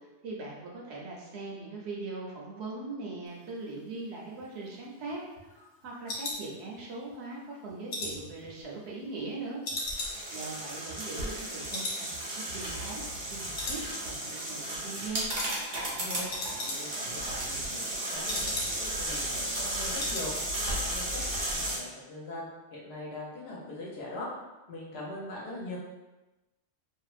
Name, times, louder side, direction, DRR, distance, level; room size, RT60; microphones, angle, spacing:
voice 1, 0.2-5.2 5.5-9.6 10.3-12.2 12.5-13.0 13.3-15.2, right 3 dB, 70° right, -3 dB, 0.8 m, -40 dB
sound 1, 4.4-7.1 7.5-9.3 9.6-11.4 11.7-12.1 12.3-12.4 12.9-13.3 13.5-14.3 14.6-14.9 15.3-15.5 15.8-15.9 16.1-17.1 17.4-19.0 19.3-19.4 19.7-20.3 20.6-20.9 21.1-21.2, left 2 dB, 90° left, 1.0 m, -38 dB
sound 2, 9.8-21.8, right 1 dB, 85° right, 1.1 m, -34 dB
voice 2, 15.9-16.3 16.7-24.3 24.7-25.8, left 1 dB, 65° left, -4 dB, 0.9 m, -41 dB
2.6 x 2.1 x 2.4 m, 1.1 s
omnidirectional pair, 1.2 m